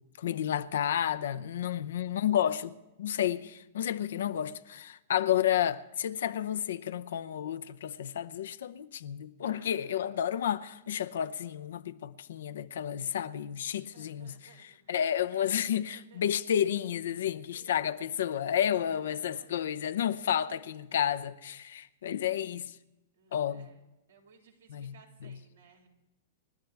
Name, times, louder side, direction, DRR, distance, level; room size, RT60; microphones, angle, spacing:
voice 1, 0.2-14.3 14.6-22.7 23.3-23.7 24.7-24.9 25.2-25.4, left 10 dB, 75° left, 0.7 m, -31 dB
voice 2, 1.5-2.1 3.5-3.7 9.4-9.9 13.7-16.2 17.5-17.9 18.9-20.2 23.1-25.9, right 5 dB, 90° right, 3.6 m, -61 dB
29.5 x 12.5 x 3.5 m
hypercardioid pair, 115°, 0 cm